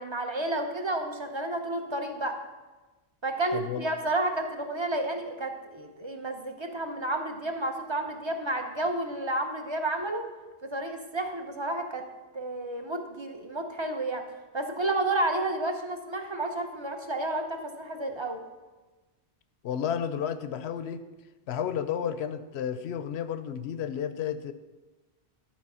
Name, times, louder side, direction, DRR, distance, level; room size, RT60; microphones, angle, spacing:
voice 1, 0.0-2.4 3.2-10.3 10.7-12.0 12.3-14.2 14.5-18.4, right 2 dB, 30° right, 5 dB, 0.7 m, -31 dB
voice 2, 3.5-3.9 19.6-21.0 21.5-24.5, left 8 dB, 80° left, 11 dB, 0.8 m, -32 dB
11.5 x 4.4 x 5.5 m, 1.2 s
omnidirectional pair, 1.1 m